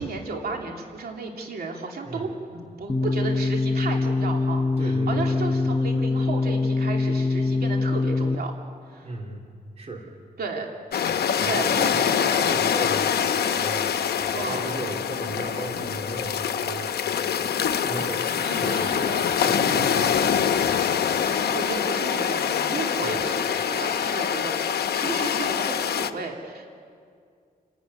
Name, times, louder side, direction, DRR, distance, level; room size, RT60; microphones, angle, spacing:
voice 1, 0.0-8.5 8.9-9.1 10.4-10.7 11.4-12.1 14.3-14.6 18.5-19.2 19.9-20.2 21.4-26.7, right 3 dB, 75° right, 1 dB, 2.8 m, -33 dB
sound 1, 2.9-8.4, left 3 dB, 15° left, 0.8 m, -24 dB
voice 2, 4.8-5.4 9.0-9.4 9.8-10.0 11.4-11.6 11.9-13.9 14.3-16.9 17.8-19.0 19.4-20.3 20.6-20.9 23.0-23.2, right 2 dB, 40° right, 0 dB, 3.0 m, -36 dB
sound 2, 10.9-26.1, left 8 dB, 90° left, 0.9 m, -24 dB
29.5 x 11.5 x 9.5 m, 2.2 s
wide cardioid pair, 95°, 16 cm